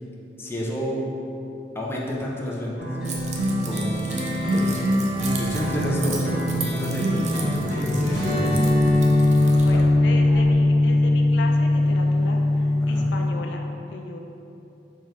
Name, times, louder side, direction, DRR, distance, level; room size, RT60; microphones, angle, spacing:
voice 1, 0.4-1.0 1.7-2.9 3.6-4.0 4.5-4.9 5.2-9.0 9.5-9.8 12.8-13.1, equal, 15° left, -4 dB, 0.6 m, -30 dB
sound 1, 2.8-13.3, left 1 dB, 5° right, 1.4 m, -21 dB
Keys jangling, 3.0-9.8, right 5 dB, 40° right, 0.5 m, -38 dB
sound 2, 3.1-10.5, right 1 dB, 80° right, 1.3 m, -40 dB
voice 2, 9.6-14.2, left 2 dB, 70° left, 2 dB, 0.3 m, -36 dB
4.4 x 3.6 x 3.2 m, 2.8 s
head